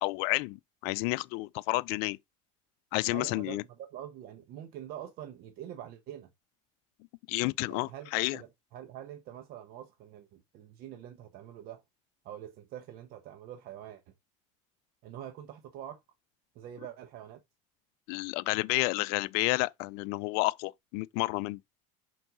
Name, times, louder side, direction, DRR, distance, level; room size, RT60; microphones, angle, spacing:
voice 1, 0.0-2.2 2.9-3.6 7.3-8.4 18.1-21.6, left 24 dB, 70° left, 0.4 m, -30 dB
voice 2, 3.1-6.3 7.7-11.8 12.2-14.0 15.0-16.0 16.5-17.4, right 11 dB, 60° right, 1.1 m, -45 dB
6.0 x 4.5 x 4.0 m
supercardioid pair, 100°, 17 cm